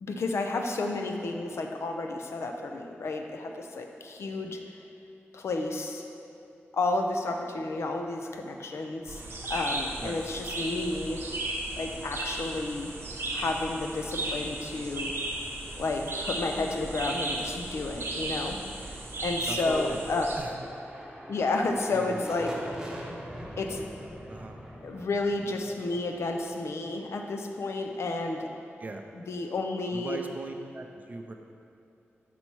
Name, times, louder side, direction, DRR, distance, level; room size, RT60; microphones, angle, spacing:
voice 1, 0.0-4.6 5.3-6.0 6.7-9.2 9.5-11.2 11.8-12.9 13.3-15.1 15.8-18.6 19.2-20.3 21.3-22.5 23.6-23.9 24.8-28.5 29.3-30.2, left 3 dB, 75° left, 3 dB, 0.5 m, -31 dB
sound 1, 9.1-20.4, right 2 dB, 65° right, 0.9 m, -35 dB
sound 2, 19.3-27.1, equal, 15° right, 0.8 m, -43 dB
voice 2, 19.5-20.0 20.4-20.7 21.9-22.2 24.3-24.6 28.8-29.0 29.9-31.3, right 2 dB, 35° right, 4 dB, 0.4 m, -38 dB
5.4 x 4.2 x 4.6 m, 2.8 s
wide cardioid pair, 125°, 5 cm